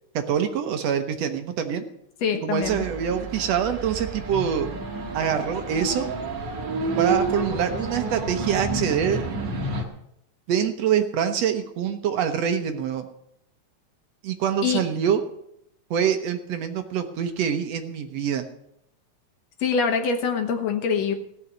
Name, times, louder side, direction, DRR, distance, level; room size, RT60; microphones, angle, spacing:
voice 1, 0.1-1.8 2.4-4.7 5.1-6.1 7.0-9.2 10.5-13.1 14.2-15.2 15.9-18.5, right 8 dB, 65° right, 7 dB, 2.0 m, -25 dB
voice 2, 2.2-2.8 14.6-14.8 19.6-21.1, left 6 dB, 65° left, 6 dB, 2.4 m, -24 dB
sound 1, 2.6-9.8, right 3 dB, 45° right, 2.0 m, -29 dB
17.0 x 6.1 x 9.4 m, 0.76 s
omnidirectional pair, 3.4 m